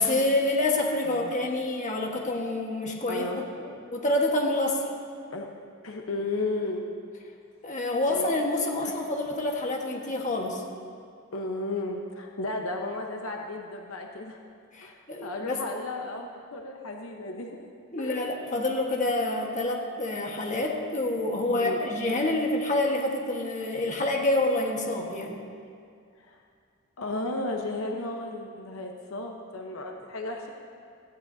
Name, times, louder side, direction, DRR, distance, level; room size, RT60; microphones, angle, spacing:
voice 1, 0.0-4.9 7.6-10.6 14.7-15.6 17.9-25.4, left 2 dB, 35° left, 0 dB, 1.4 m, -27 dB
voice 2, 3.1-3.4 5.3-5.5 5.8-6.9 8.1-8.3 8.8-8.9 11.3-14.4 14.8-14.9 15.2-17.6 18.0-18.2 21.5-21.8 22.1-22.2 26.2-26.4 27.0-30.5, left 2 dB, 75° left, 2 dB, 1.0 m, -34 dB
17.0 x 14.0 x 2.7 m, 2.3 s
head